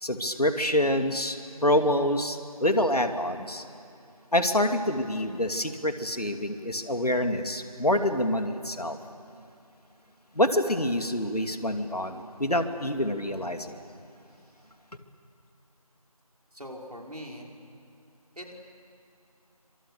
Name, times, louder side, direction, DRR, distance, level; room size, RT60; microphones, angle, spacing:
voice 1, 0.0-3.6 4.3-9.0 10.3-13.8, left 1 dB, 80° left, 7 dB, 2.5 m, -26 dB
voice 2, 16.5-17.5 18.4-18.5, equal, 80° right, 0 dB, 5.7 m, -41 dB
29.5 x 25.5 x 6.8 m, 2.7 s
figure-of-eight pair, 170°, 19 cm